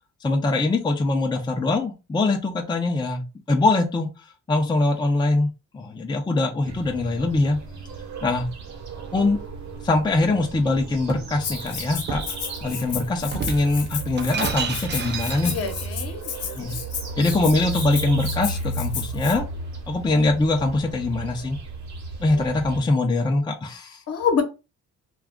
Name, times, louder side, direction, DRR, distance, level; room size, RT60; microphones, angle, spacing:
voice 1, 0.2-4.1 4.5-5.5 5.7-7.6 8.2-8.5 9.1-9.4 9.8-15.5 16.5-16.7 17.2-19.5 19.9-21.6 22.2-24.0, left 2 dB, 15° left, 0.5 m, -23 dB
sound 1, 6.7-22.8, right 3 dB, 65° right, 1.0 m, -34 dB
Shatter, 10.5-11.3 12.1-12.4 13.3-15.9, right 6 dB, 35° right, 0.5 m, -31 dB
Rattle (instrument), 11.4-19.4, left 8 dB, 75° left, 0.6 m, -33 dB
voice 2, 15.4-16.8 22.3-22.4 24.1-24.4, left 6 dB, 50° left, 0.9 m, -27 dB
2.3 x 2.3 x 3.5 m
cardioid pair, 90°, 30 cm